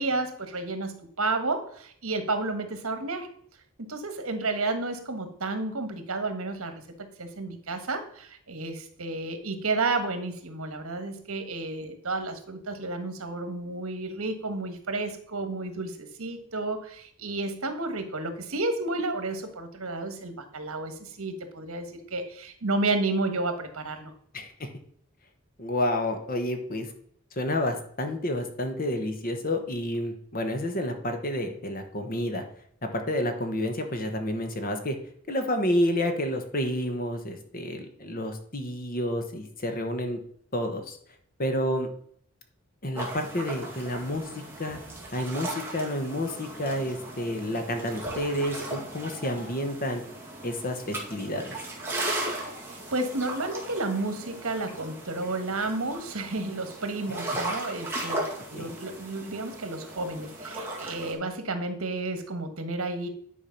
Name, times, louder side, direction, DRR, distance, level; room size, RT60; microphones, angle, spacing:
voice 1, 0.0-3.3 3.8-24.1 52.7-58.2 58.5-63.1, right 2 dB, 80° right, 7 dB, 1.4 m, -31 dB
voice 2, 24.3-24.7 25.6-26.9 27.4-32.4 32.9-35.0 35.3-40.2 40.5-41.0 41.4-41.9 42.8-44.8 45.1-50.0 50.4-51.6 58.5-58.7, left 1 dB, 40° left, 5 dB, 1.2 m, -30 dB
sound 1, 42.9-61.1, right 1 dB, 10° right, 2.0 m, -37 dB
10.0 x 4.7 x 5.8 m, 0.64 s
head